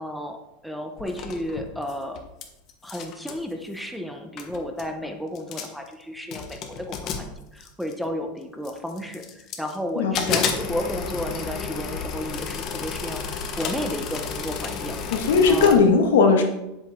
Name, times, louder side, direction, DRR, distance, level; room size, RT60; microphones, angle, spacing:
voice 1, 0.0-2.2 2.8-7.3 7.5-15.0 15.5-15.8, left 1 dB, ahead, 3 dB, 0.8 m, -32 dB
sound 1, 1.0-2.4 2.7-3.4 4.1-4.2 4.4-4.9 5.4-5.9 6.3-8.1 8.6-9.8 10.1-15.8, left 6 dB, 35° left, 1.1 m, -31 dB
voice 2, 10.0-10.4 15.1-16.4, left 4 dB, 90° left, 4 dB, 1.7 m, -18 dB
9.1 x 8.0 x 3.7 m, 0.91 s
supercardioid pair, 155°, 0 cm